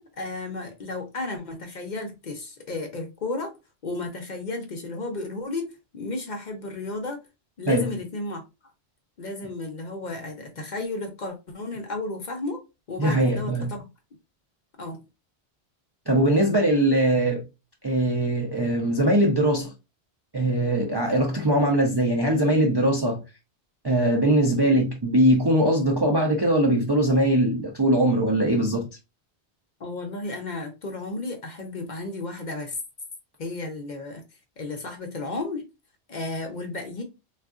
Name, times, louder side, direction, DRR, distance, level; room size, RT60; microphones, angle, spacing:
voice 1, 0.0-3.5 3.8-5.7 5.9-7.2 7.6-8.4 9.2-12.6 12.9-13.9 14.8-15.0 29.8-32.8 33.4-34.2 34.6-35.6 36.1-37.0, left 2 dB, 50° left, 0.6 m, -33 dB
voice 2, 13.0-13.7 16.1-17.4 17.8-19.7 20.3-23.2 23.8-28.9, right 1 dB, 40° right, 0.4 m, -21 dB
3.5 x 2.3 x 2.3 m
omnidirectional pair, 1.1 m